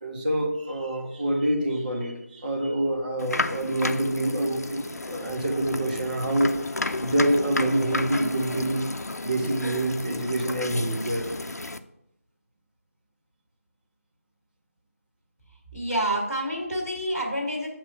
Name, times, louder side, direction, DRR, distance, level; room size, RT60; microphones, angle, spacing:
voice 1, 0.0-6.5 7.0-8.9 9.2-11.3, right 1 dB, 30° right, -1 dB, 1.2 m, -26 dB
sound 1, 3.2-11.8, left 2 dB, 80° left, 0.6 m, -32 dB
voice 2, 15.7-17.7, right 1 dB, 5° right, -14 dB, 1.8 m, -28 dB
8.2 x 3.1 x 6.2 m, 0.84 s
figure-of-eight pair, 175°, 8 cm